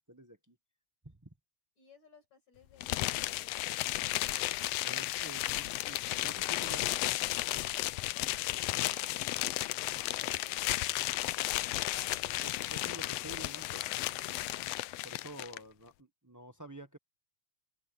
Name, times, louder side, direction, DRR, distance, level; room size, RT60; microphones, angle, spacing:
voice 1, 0.1-0.6 1.0-1.3 4.8-7.3 9.2-10.4 12.2-14.6 15.0-17.0, equal, 20° right, 0.5 m, -50 dB
voice 2, 1.8-4.2 9.9-11.1, left 5 dB, 70° left, 8.0 m, -60 dB
sound 1, 2.8-15.6, left 17 dB, 85° left, 1.4 m, -34 dB
open air
omnidirectional pair, 3.3 m